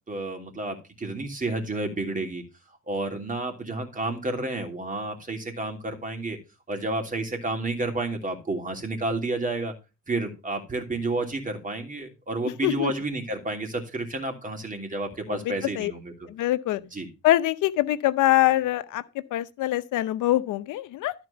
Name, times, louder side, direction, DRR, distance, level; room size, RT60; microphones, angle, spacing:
voice 1, 0.1-2.4 2.9-6.4 6.7-9.7 10.1-16.3 16.8-17.1, right 2 dB, 25° right, 3.0 m, -30 dB
voice 2, 15.3-15.9 16.3-16.8 17.2-19.0 19.3-21.1, left 15 dB, 85° left, 0.7 m, -24 dB
13.0 x 4.4 x 5.6 m
cardioid pair, 90°, 30 cm